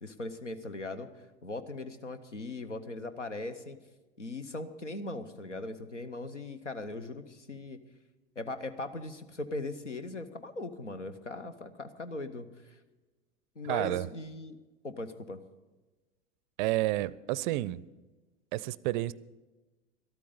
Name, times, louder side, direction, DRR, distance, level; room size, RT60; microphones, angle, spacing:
voice 1, 0.0-1.1 1.4-3.8 4.2-7.8 8.4-12.8 13.6-14.6 14.8-15.4, left 2 dB, 85° left, 0.9 m, -39 dB
voice 2, 13.6-14.1 16.6-17.8 18.5-19.1, right 17 dB, 45° right, 0.4 m, -30 dB
13.0 x 13.0 x 5.4 m
figure-of-eight pair, 80°, 35 cm